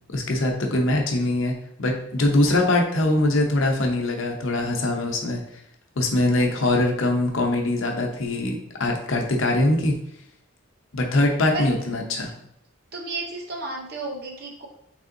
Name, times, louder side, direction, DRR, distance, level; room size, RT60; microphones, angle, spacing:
voice 1, 0.1-5.4 6.0-10.0 10.9-12.3, left 2 dB, 70° left, 1 dB, 0.7 m, -22 dB
voice 2, 6.4-6.8 11.5-11.7 12.9-14.7, right 2 dB, 45° right, 0 dB, 0.8 m, -33 dB
5.1 x 3.4 x 2.7 m, 0.74 s
head